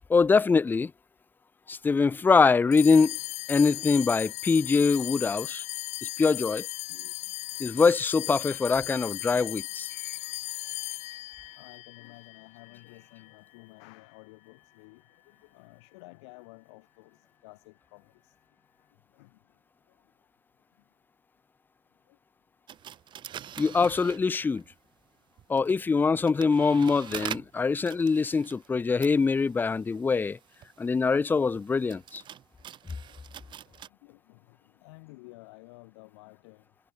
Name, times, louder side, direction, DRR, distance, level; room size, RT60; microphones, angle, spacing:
voice 1, 0.1-0.9 1.7-3.2 3.5-5.6 6.2-6.7 7.6-10.2 23.6-24.6 25.5-30.4 30.8-32.2, left 4 dB, 10° left, 0.8 m, -23 dB
voice 2, 1.8-2.2 4.2-4.3 6.9-7.9 9.8-9.9 11.5-18.3 19.1-19.4 22.1-22.2 25.7-25.9 26.3-26.4 29.5-29.6 30.8-30.9 33.1-33.2 33.5-36.6, left 26 dB, 65° left, 5.9 m, -53 dB
sound 1, 2.7-13.4, left 19 dB, 45° left, 1.6 m, -37 dB
sound 2, 22.7-24.7 25.4-33.9, right 10 dB, 30° right, 1.7 m, -44 dB
supercardioid pair, 115°, 15 cm